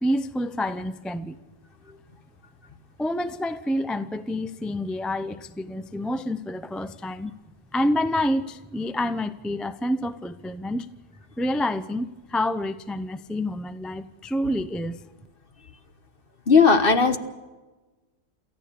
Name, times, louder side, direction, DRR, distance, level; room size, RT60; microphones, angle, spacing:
voice 1, 0.0-1.4 3.0-7.3 7.7-10.9 11.4-15.0, left 1 dB, ahead, 12 dB, 0.5 m, -28 dB
voice 2, 16.5-17.2, left 5 dB, 50° left, 8 dB, 1.5 m, -16 dB
28.0 x 14.5 x 6.8 m, 1.2 s
omnidirectional pair, 1.3 m